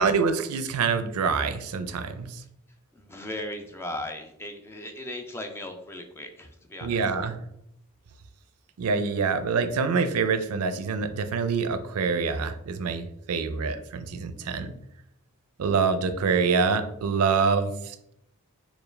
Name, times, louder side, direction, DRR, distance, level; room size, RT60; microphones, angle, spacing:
voice 1, 0.0-2.4 6.8-7.3 8.8-14.7 15.6-18.0, right 5 dB, 80° right, 10 dB, 0.4 m, -26 dB
voice 2, 2.9-7.1, left 1 dB, 10° left, 4 dB, 0.4 m, -37 dB
4.5 x 2.3 x 3.2 m, 0.76 s
head